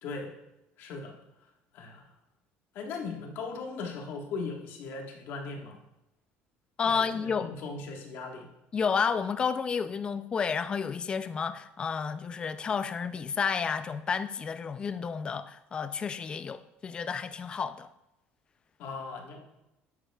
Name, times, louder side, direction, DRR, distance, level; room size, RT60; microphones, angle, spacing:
voice 1, 0.0-0.3 0.8-1.1 1.7-2.0 2.7-5.8 6.9-8.5 18.8-19.4, left 4 dB, 60° left, 1.4 m, -38 dB
voice 2, 6.8-7.5 8.7-17.9, left 6 dB, 20° left, 0.3 m, -31 dB
10.0 x 7.8 x 2.3 m
cardioid pair, 170°, 4 cm